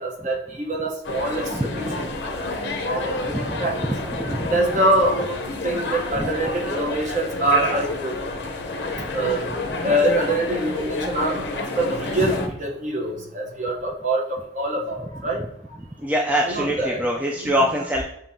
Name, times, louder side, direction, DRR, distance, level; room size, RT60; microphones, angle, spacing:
voice 1, 0.0-1.9 2.6-3.8 4.5-5.4 5.6-8.1 9.1-9.4 9.8-15.4 16.4-17.0 17.4-17.8, right 1 dB, 40° right, 0 dB, 0.8 m, -25 dB
sound 1, 1.0-12.5, left 2 dB, 60° left, 0.6 m, -29 dB
voice 2, 1.5-2.0 3.4-3.6 3.9-4.0 4.2-4.4 6.2-6.3 9.0-9.1 12.2-12.3 16.0-18.0, equal, 10° right, -2 dB, 0.3 m, -24 dB
7.0 x 2.7 x 2.7 m, 0.75 s
head